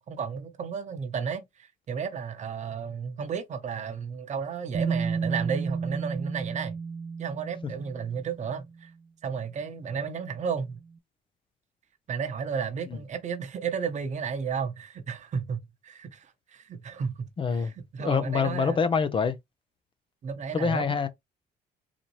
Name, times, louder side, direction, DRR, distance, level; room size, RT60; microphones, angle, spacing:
voice 1, 0.0-6.8 7.2-8.9 9.2-10.8 12.1-18.8 20.2-21.1, right 6 dB, 45° right, 0.9 m, -33 dB
Bass guitar, 4.7-8.7 9.8-9.9, right 5 dB, 25° right, 0.4 m, -32 dB
voice 2, 17.4-17.7 18.0-19.4 20.5-21.1, left 5 dB, 30° left, 0.6 m, -25 dB
4.0 x 2.8 x 3.0 m
cardioid pair, 110°, 17 cm